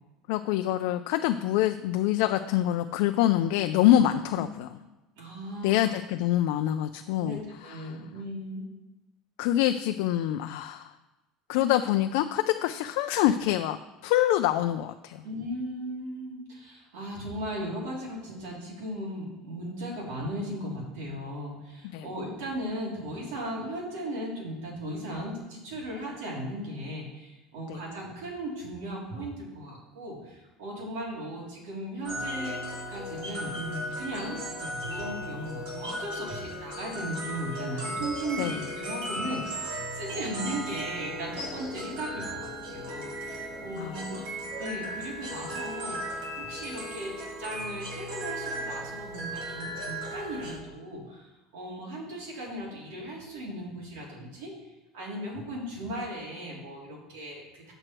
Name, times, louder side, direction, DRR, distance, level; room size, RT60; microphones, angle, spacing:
voice 1, 0.3-4.7 5.6-8.0 9.4-10.9 11.5-15.2 21.8-22.1 27.7-27.8 38.4-38.5 43.8-44.0, left 13 dB, 70° left, 7 dB, 0.4 m, -26 dB
voice 2, 5.2-5.9 7.2-8.6 15.2-32.6 32.9-44.2 44.6-46.0 46.4-54.5 54.9-57.7, equal, 90° right, -3 dB, 3.4 m, -37 dB
sound 1, 32.0-50.6, equal, 65° right, 2.9 m, -36 dB
7.9 x 7.8 x 4.5 m, 1.1 s
cardioid pair, 160°, 0 cm